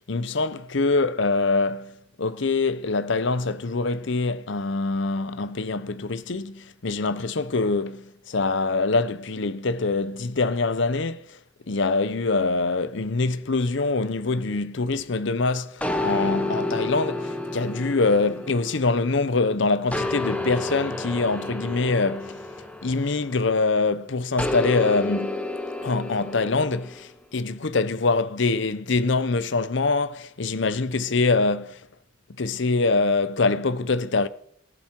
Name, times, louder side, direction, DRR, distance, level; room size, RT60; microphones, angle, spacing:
voice 1, 0.1-11.4 11.7-22.4 22.8-25.5 25.8-31.9 32.4-34.3, left 3 dB, 60° left, 0.7 m, -24 dB
sound 1, 15.8-19.4 19.9-23.6 24.4-27.1, left 2 dB, 5° left, 1.1 m, -30 dB
19.0 x 11.0 x 4.5 m
head